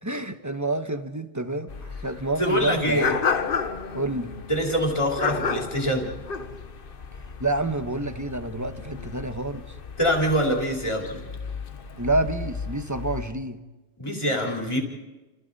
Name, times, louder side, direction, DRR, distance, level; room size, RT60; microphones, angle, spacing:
voice 1, 0.0-3.2 3.9-4.3 7.4-9.7 12.0-13.6, right 2 dB, 15° right, 8 dB, 1.1 m, -28 dB
sound 1, 1.7-13.3, left 5 dB, 45° left, 1.1 m, -33 dB
voice 2, 2.4-3.1 4.5-6.1 10.0-11.2 14.0-14.8, equal, 20° left, 0 dB, 3.7 m, -24 dB
30.0 x 29.0 x 4.2 m, 1.2 s
omnidirectional pair, 1.3 m